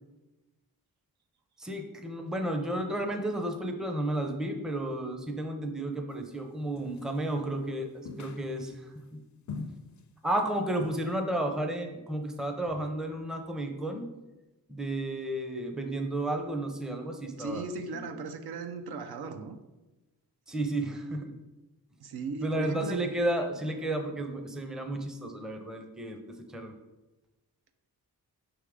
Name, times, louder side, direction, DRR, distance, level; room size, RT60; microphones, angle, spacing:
voice 1, 1.6-7.9 8.2-9.2 10.2-14.1 14.7-17.7 17.9-18.0 20.5-21.3 22.4-26.7, right 1 dB, ahead, 4 dB, 0.5 m, -32 dB
sound 1, 6.8-7.3 8.1-8.9 9.5-10.0 10.3-10.5 10.8-11.1, left 4 dB, 50° left, 0.5 m, -42 dB
voice 2, 17.4-19.6 22.0-23.0, right 3 dB, 80° right, 7 dB, 0.6 m, -37 dB
5.5 x 3.5 x 4.9 m, 1.1 s
wide cardioid pair, 135°, 38 cm